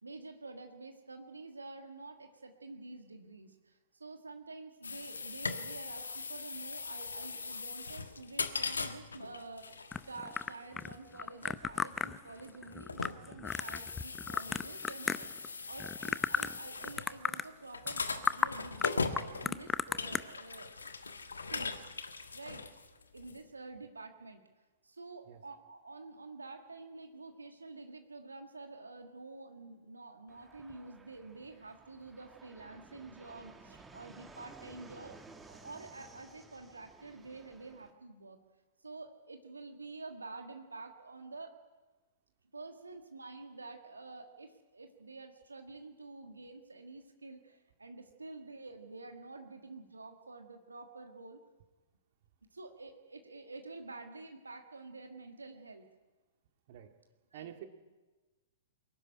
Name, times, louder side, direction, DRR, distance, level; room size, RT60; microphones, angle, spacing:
voice 1, 0.0-20.9 21.3-22.6 23.1-24.4 24.8-38.4 38.8-41.5 42.5-51.4 52.5-55.9 57.3-57.5, right 3 dB, 85° right, 5 dB, 1.6 m, -49 dB
sound 1, 4.8-23.4, left 4 dB, 80° left, 1.4 m, -40 dB
sound 2, 9.9-15.5 15.8-16.6 16.8-17.5 17.9-18.0 18.2-18.5 18.8-20.2, left 6 dB, 15° left, 0.6 m, -34 dB
Fixed-wing aircraft airplane, 30.3-37.9, right 3 dB, 10° right, 1.9 m, -56 dB
voice 2, 57.3-57.7, right 11 dB, 50° right, 6 dB, 2.0 m, -47 dB
22.5 x 13.5 x 9.8 m, 1.2 s
figure-of-eight pair, 110°, 0 cm